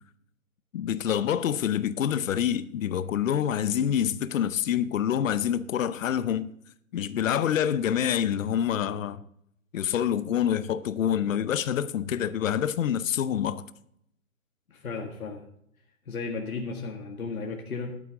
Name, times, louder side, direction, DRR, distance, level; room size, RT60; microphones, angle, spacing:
voice 1, 0.7-6.5 6.9-9.2 9.7-13.6, left 9 dB, 65° left, 0.8 m, -26 dB
voice 2, 14.7-15.4 16.1-18.0, left 4 dB, 85° left, 1.8 m, -34 dB
12.0 x 8.9 x 3.7 m
hypercardioid pair, 145°, 42 cm